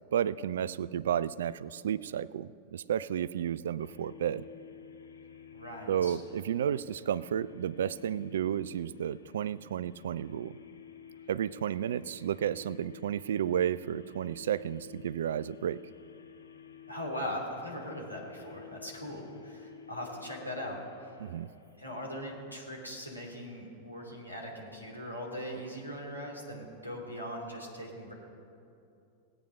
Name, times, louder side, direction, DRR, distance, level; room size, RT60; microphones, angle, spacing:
voice 1, 0.1-4.4 5.9-10.6 11.3-15.8 21.2-21.5, right 9 dB, 60° right, 19 dB, 0.3 m, -32 dB
sound 1, 3.8-22.1, left 8 dB, 75° left, 0.8 m, -52 dB
voice 2, 5.5-6.2 16.9-21.1 21.8-28.1, equal, 90° left, -2 dB, 2.6 m, -40 dB
18.5 x 8.8 x 5.6 m, 2.6 s
figure-of-eight pair, 90°, 0 cm